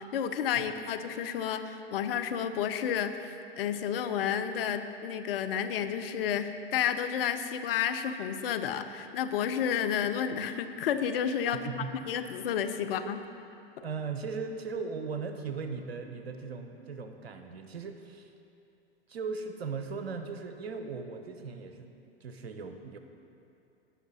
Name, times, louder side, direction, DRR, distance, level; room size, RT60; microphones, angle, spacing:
voice 1, 0.0-13.2, left 8 dB, 65° left, 9 dB, 0.7 m, -31 dB
voice 2, 11.5-11.9 13.8-18.3 19.1-21.9 22.2-23.0, right 5 dB, 80° right, 7 dB, 0.9 m, -38 dB
17.0 x 5.9 x 4.1 m, 2.7 s
hypercardioid pair, 95°, 30 cm